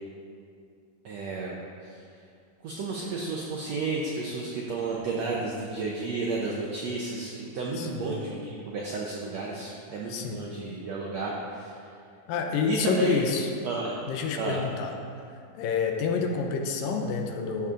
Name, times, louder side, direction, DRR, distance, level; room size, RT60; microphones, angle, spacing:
voice 1, 1.0-1.5 1.9-2.0 2.6-11.8 12.6-13.3 13.6-14.0 14.4-14.6, right 3 dB, 75° right, -3 dB, 1.6 m, -32 dB
voice 2, 7.8-8.2 10.1-10.4 12.3-13.5 14.1-14.9 15.5-17.7, left 5 dB, 80° left, 3 dB, 2.3 m, -28 dB
14.0 x 7.1 x 3.8 m, 2.4 s
omnidirectional pair, 4.2 m